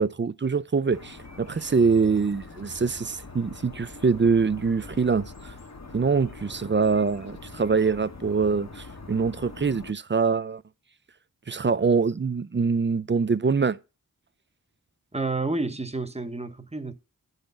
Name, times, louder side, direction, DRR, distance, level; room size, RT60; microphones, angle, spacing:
voice 1, 0.0-5.5 5.9-10.6 11.5-13.8, right 5 dB, 35° right, 0.4 m, -24 dB
sound 1, 0.9-9.9, left 3 dB, 50° left, 1.2 m, -43 dB
voice 2, 15.1-16.9, right 3 dB, 20° right, 0.8 m, -30 dB
10.0 x 4.1 x 6.7 m
wide cardioid pair, 45°, 35 cm